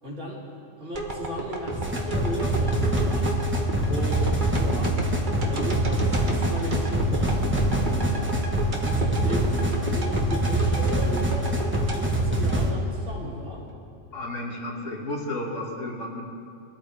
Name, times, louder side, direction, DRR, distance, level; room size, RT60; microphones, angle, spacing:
voice 1, 0.0-0.4 0.8-3.3 3.9-5.0 5.5-7.4 7.7-8.4 8.8-11.5 11.9-13.6, equal, 70° right, -5 dB, 3.4 m, -35 dB
sound 1, 0.9-13.1 13.6-13.7, right 2 dB, 40° right, 1.5 m, -32 dB
sound 2, 1.7-12.7, right 1 dB, 10° right, 1.3 m, -25 dB
voice 2, 14.1-16.2, left 1 dB, 75° left, -1 dB, 2.3 m, -32 dB
22.0 x 13.0 x 3.4 m, 2.3 s
omnidirectional pair, 1.3 m